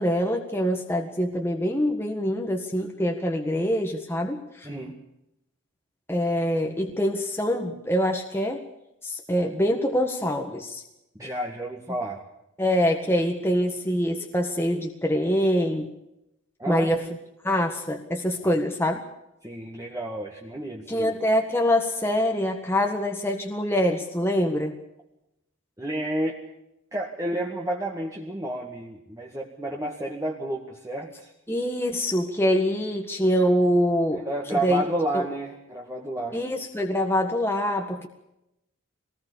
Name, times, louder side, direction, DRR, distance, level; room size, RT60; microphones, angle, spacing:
voice 1, 0.0-4.7 6.1-8.7 9.0-10.8 12.6-15.9 16.7-17.1 17.4-19.0 20.9-24.8 31.5-34.8 35.1-35.2 36.3-38.1, equal, 10° left, 3 dB, 1.7 m, -25 dB
voice 2, 4.6-5.0 11.2-12.2 16.6-16.9 18.4-18.6 19.4-21.1 25.8-26.4 26.9-31.3 34.3-36.4, right 1 dB, 15° right, -1 dB, 2.1 m, -31 dB
25.0 x 19.5 x 7.0 m, 0.86 s
head